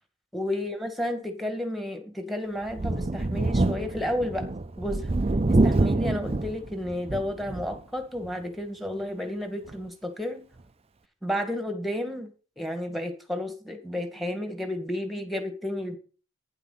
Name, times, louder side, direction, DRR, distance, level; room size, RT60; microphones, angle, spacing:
voice 1, 0.3-4.5 4.8-5.1 5.5-10.4 11.2-12.3 12.6-16.0, left 1 dB, ahead, 6 dB, 1.9 m, -32 dB
Thunder, 2.7-7.8 8.2-8.3 9.7-9.8, right 2 dB, 30° right, 0.5 m, -26 dB
11.5 x 9.7 x 4.1 m, 0.37 s
head